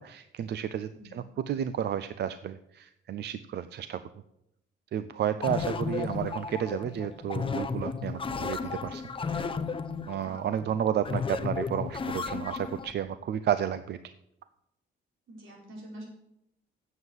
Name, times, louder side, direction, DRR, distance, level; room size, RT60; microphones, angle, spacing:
voice 1, 0.0-4.0 4.9-9.0 9.3-9.5 10.1-14.1, right 9 dB, 55° right, 13 dB, 0.5 m, -32 dB
sound 1, 5.4-12.9, left 5 dB, 25° left, 0.7 m, -34 dB
voice 2, 15.3-16.0, right 1 dB, 80° right, -2 dB, 4.7 m, -46 dB
8.0 x 7.3 x 7.9 m, 0.82 s
cardioid pair, 90°, 20 cm